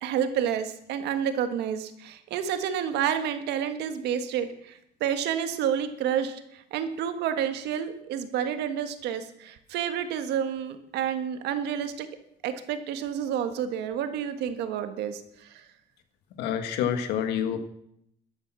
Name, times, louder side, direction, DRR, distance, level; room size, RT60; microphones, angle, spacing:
voice 1, 0.0-12.1 12.4-15.6, right 9 dB, 85° right, 9 dB, 1.6 m, -29 dB
voice 2, 16.4-17.6, left 9 dB, 90° left, 8 dB, 1.6 m, -27 dB
14.0 x 10.5 x 6.2 m, 0.76 s
cardioid pair, 110°, 17 cm